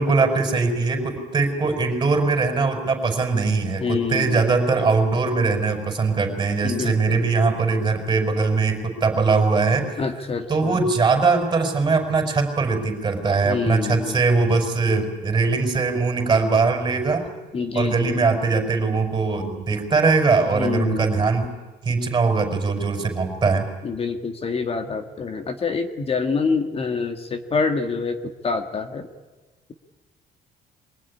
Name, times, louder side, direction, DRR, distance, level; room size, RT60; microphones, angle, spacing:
voice 1, 0.0-10.0 10.5-17.2 17.7-21.5 21.8-23.7, right 4 dB, 25° right, 5 dB, 5.4 m, -21 dB
voice 2, 3.8-4.4 6.6-7.3 10.0-10.8 13.4-14.2 17.5-18.2 20.5-21.3 23.8-29.1, left 4 dB, 35° left, 7 dB, 1.8 m, -26 dB
24.0 x 18.0 x 10.0 m, 1.2 s
cardioid pair, 110°, 17 cm